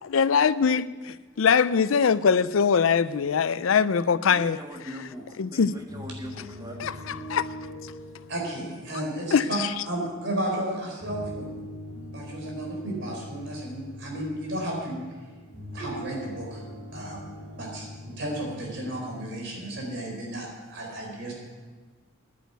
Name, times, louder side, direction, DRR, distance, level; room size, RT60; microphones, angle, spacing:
voice 1, 0.1-4.6 5.4-5.7 6.8-6.9 7.3-7.5 9.3-9.7, left 6 dB, 85° left, 0.5 m, -22 dB
voice 2, 4.3-7.2, equal, 20° right, 1.7 m, -41 dB
sound 1, 5.8-19.1, equal, 85° right, 4.2 m, -42 dB
voice 3, 8.3-9.6 9.8-11.6 12.1-15.0 15.7-16.6 16.9-21.3, right 1 dB, 65° right, 4.7 m, -33 dB
10.5 x 10.5 x 8.1 m
head